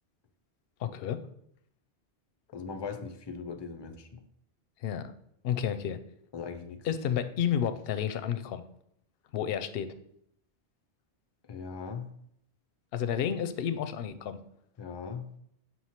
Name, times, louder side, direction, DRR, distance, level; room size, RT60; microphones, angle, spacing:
voice 1, 0.8-1.2 4.8-5.1 5.4-6.0 6.8-8.6 9.3-9.9 12.9-14.4, left 9 dB, 65° left, 11 dB, 0.7 m, -31 dB
voice 2, 2.5-4.2 6.3-6.8 11.5-12.1 14.8-15.3, left 5 dB, 40° left, 8 dB, 0.4 m, -39 dB
5.8 x 3.1 x 5.6 m, 0.70 s
omnidirectional pair, 1.1 m